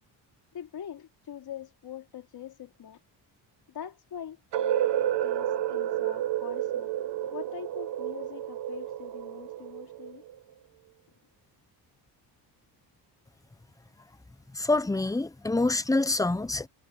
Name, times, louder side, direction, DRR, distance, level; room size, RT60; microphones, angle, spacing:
voice 1, 0.5-3.0 3.7-6.9 7.3-10.2, left 9 dB, 60° left, 4.3 m, -43 dB
sound 1, 4.5-10.4, right 11 dB, 85° right, 1.8 m, -30 dB
voice 2, 14.5-16.7, left 2 dB, 10° left, 0.8 m, -26 dB
cardioid pair, 95°, 41 cm